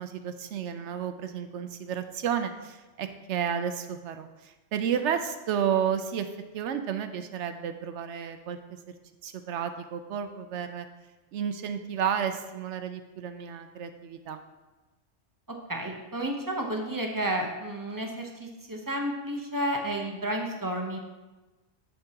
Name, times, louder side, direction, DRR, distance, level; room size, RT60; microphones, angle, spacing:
voice 1, 0.0-6.3 6.5-8.8 9.2-10.9 11.3-14.4, right 8 dB, 75° right, 8 dB, 0.9 m, -32 dB
voice 2, 15.7-21.0, right 1 dB, 20° right, 1 dB, 0.8 m, -31 dB
8.0 x 7.6 x 2.9 m, 1.2 s
omnidirectional pair, 1.2 m